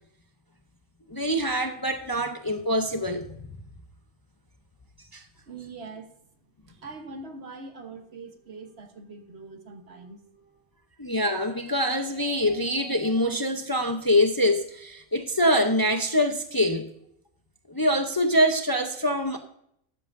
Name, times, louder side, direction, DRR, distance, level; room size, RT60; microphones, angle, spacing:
voice 1, 1.1-3.5 5.1-5.2 11.0-16.9 17.7-19.4, equal, 30° left, 6 dB, 0.4 m, -24 dB
voice 2, 5.5-6.3 6.7-10.7, right 3 dB, 50° right, 6 dB, 1.3 m, -43 dB
12.5 x 8.5 x 2.6 m, 0.71 s
omnidirectional pair, 1.5 m